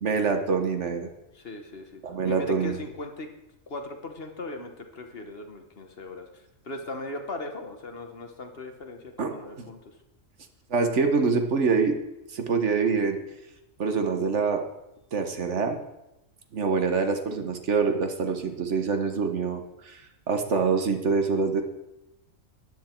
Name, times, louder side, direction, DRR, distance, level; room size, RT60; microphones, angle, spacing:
voice 1, 0.0-1.1 2.0-2.8 9.2-9.3 9.6-9.7 10.7-11.9 12.3-13.2 13.8-14.6 15.1-15.8 16.5-20.0 20.3-21.6, right 5 dB, 60° right, 6 dB, 1.5 m, -25 dB
voice 2, 1.3-3.3 3.7-9.9, left 2 dB, 50° left, 5 dB, 1.3 m, -39 dB
13.5 x 10.0 x 4.5 m, 0.91 s
omnidirectional pair, 1.4 m